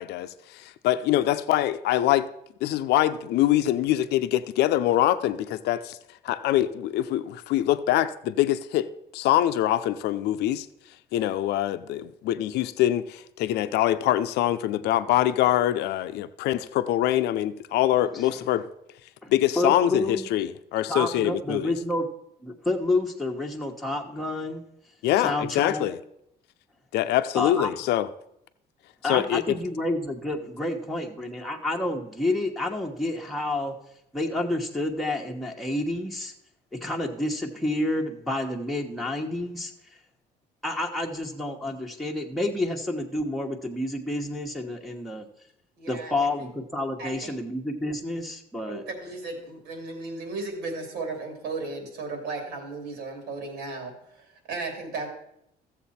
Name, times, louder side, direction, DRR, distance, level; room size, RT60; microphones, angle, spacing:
voice 1, 0.0-2.3 2.6-6.0 6.2-10.7 11.1-18.7 19.3-21.8 25.0-26.0 26.9-28.1 29.0-29.6, left 13 dB, 80° left, 0.6 m, -24 dB
voice 2, 19.2-20.2 20.9-22.1 22.4-24.6 25.2-25.9 27.4-27.7 29.0-33.7 34.1-36.3 36.8-39.7 40.6-45.2 45.9-48.8, left 1 dB, ahead, 1.1 m, -29 dB
voice 3, 45.8-46.1 46.4-46.5 47.0-47.4 48.7-55.1, right 3 dB, 80° right, 3.1 m, -35 dB
14.0 x 7.4 x 4.3 m
cardioid pair, 110°, 17 cm